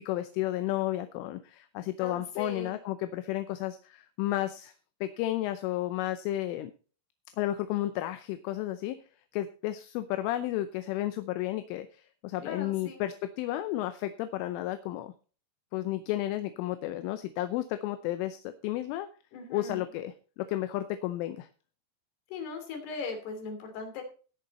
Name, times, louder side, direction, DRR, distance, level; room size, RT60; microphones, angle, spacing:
voice 1, 0.0-4.7 5.0-6.7 7.4-9.0 9.3-15.1 15.7-19.1 19.5-21.5, left 14 dB, 80° left, 10 dB, 3.2 m, -32 dB
voice 2, 2.0-2.8 12.4-13.1 19.3-19.8 22.3-24.0, left 4 dB, 60° left, 5 dB, 4.6 m, -38 dB
19.5 x 6.6 x 4.2 m, 0.37 s
omnidirectional pair, 5.7 m